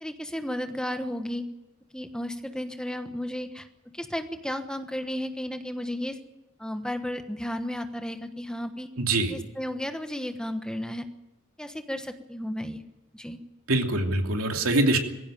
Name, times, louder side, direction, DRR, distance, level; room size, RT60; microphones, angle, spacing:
voice 1, 0.0-1.4 1.9-3.7 3.9-6.2 6.6-8.9 9.3-11.0 11.6-12.8 13.1-13.4, left 1 dB, 5° left, 7 dB, 1.2 m, -33 dB
voice 2, 9.0-9.3 13.7-15.0, right 2 dB, 75° right, 3 dB, 2.9 m, -24 dB
21.0 x 16.0 x 9.1 m, 1.0 s
head